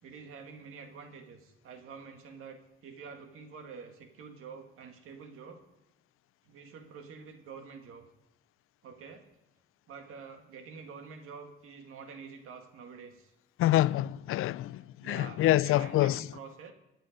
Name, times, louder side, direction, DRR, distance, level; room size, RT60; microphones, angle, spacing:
voice 1, 0.0-5.6 6.4-8.1 8.8-9.3 9.9-13.3 15.0-16.7, right 5 dB, 90° right, 2.0 m, -47 dB
voice 2, 13.6-16.2, left 14 dB, 85° left, 0.4 m, -26 dB
23.0 x 8.1 x 5.2 m
cardioid pair, 120°, 21 cm